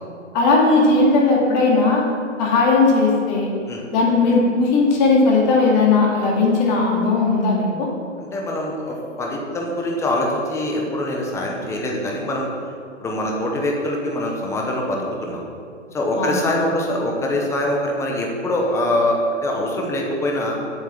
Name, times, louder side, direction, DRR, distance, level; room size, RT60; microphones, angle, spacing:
voice 1, 0.3-2.0 2.4-3.5 3.9-7.9 16.1-16.5, left 3 dB, 35° left, -2 dB, 2.5 m, -17 dB
voice 2, 8.3-12.5 13.0-15.4 15.9-20.6, left 1 dB, 5° left, 0 dB, 1.0 m, -23 dB
8.0 x 7.2 x 7.2 m, 2.3 s
hypercardioid pair, 140°, 38 cm